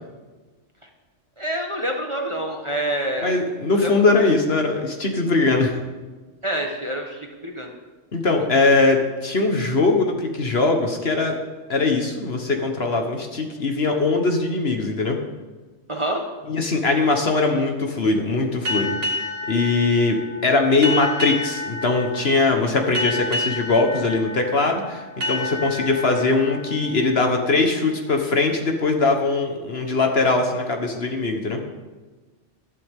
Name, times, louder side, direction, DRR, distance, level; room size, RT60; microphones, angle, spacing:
voice 1, 1.4-3.4 3.7-4.3 6.4-7.7 15.9-16.2, right 1 dB, 25° right, 1 dB, 1.2 m, -27 dB
voice 2, 3.2-5.7 8.1-11.4 11.7-15.2 16.5-19.0 19.5-31.6, left 3 dB, 50° left, 3 dB, 1.6 m, -21 dB
sound 1, 18.6-27.9, left 2 dB, 65° right, 2.3 m, -30 dB
14.0 x 12.0 x 3.7 m, 1.3 s
omnidirectional pair, 1.3 m